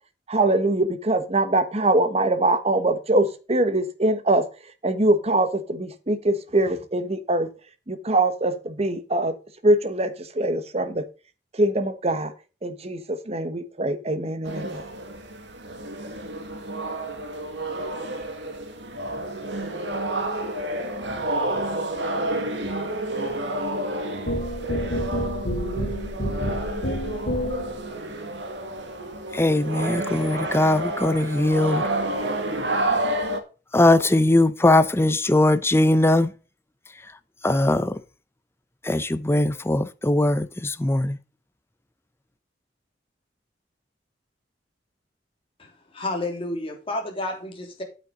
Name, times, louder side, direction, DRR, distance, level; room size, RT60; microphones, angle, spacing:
voice 1, 0.3-4.4 4.8-7.5 7.9-9.3 9.6-10.1 10.4-11.0 11.6-12.3 12.6-13.0 13.3-14.8, right 2 dB, 35° right, 1.2 m, -22 dB
sound 1, 14.5-33.4, right 1 dB, 75° right, 1.9 m, -30 dB
sound 2, 24.3-27.8, equal, 65° left, 3.8 m, -28 dB
voice 2, 29.3-31.8 33.7-36.3 37.4-37.9 38.9-41.2, left 1 dB, 15° left, 0.6 m, -20 dB
voice 3, 45.6-47.8, left 2 dB, 30° left, 3.3 m, -31 dB
9.1 x 8.9 x 3.8 m
head